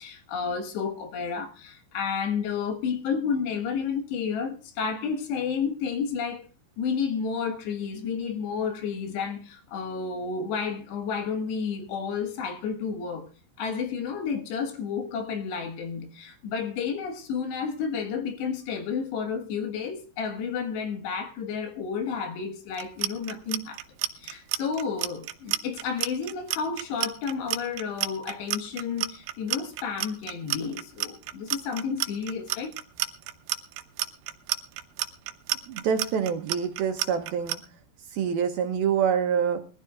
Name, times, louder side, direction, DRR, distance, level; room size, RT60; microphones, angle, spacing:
voice 1, 0.0-6.5 6.8-13.3 13.6-23.8 24.2-32.7, left 6 dB, 75° left, 3.6 m, -31 dB
Clock, 22.7-37.6, right 14 dB, 90° right, 3.1 m, -30 dB
voice 2, 35.7-37.6 38.1-39.6, right 7 dB, 75° right, 2.3 m, -26 dB
22.0 x 13.5 x 2.4 m
omnidirectional pair, 5.1 m